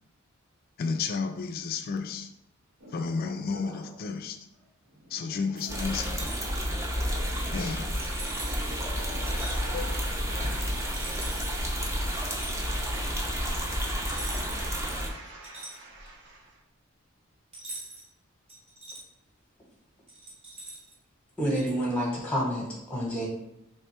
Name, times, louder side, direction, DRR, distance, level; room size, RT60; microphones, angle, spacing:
voice 1, 0.8-2.3 2.9-4.5 5.1-6.3 7.5-7.9 8.8-8.9 9.7-10.5, left 5 dB, 45° left, 7 dB, 0.3 m, -32 dB
sound 1, 2.8-4.1 4.6-14.9, right 1 dB, 90° right, 1.3 m, -45 dB
sound 2, 5.7-15.1, equal, 15° right, 0.5 m, -31 dB
sound 3, 6.1-6.5 8.0-8.7 9.3-9.6 10.9-11.5 12.3-12.6 14.0-14.7 15.0-16.2 17.5-18.1 18.5-19.0 20.1-20.9 21.5-21.7, right 2 dB, 30° right, 0.9 m, -43 dB
voice 2, 12.8-16.6, right 2 dB, 60° right, -3 dB, 0.8 m, -47 dB
voice 3, 21.4-23.3, equal, 5° left, -3 dB, 0.9 m, -28 dB
3.2 x 2.2 x 4.3 m, 0.85 s
head